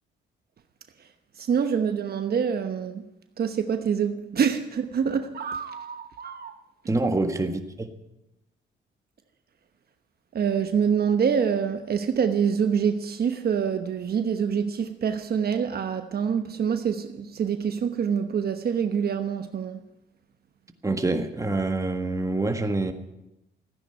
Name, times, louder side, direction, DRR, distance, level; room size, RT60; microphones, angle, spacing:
voice 1, 1.4-3.0 3.4-6.5 10.3-19.9, right 7 dB, 50° right, 1.1 m, -26 dB
voice 2, 6.9-7.9 20.8-22.9, right 2 dB, 15° right, 1.6 m, -26 dB
14.5 x 10.0 x 9.0 m
cardioid pair, 90°, 20 cm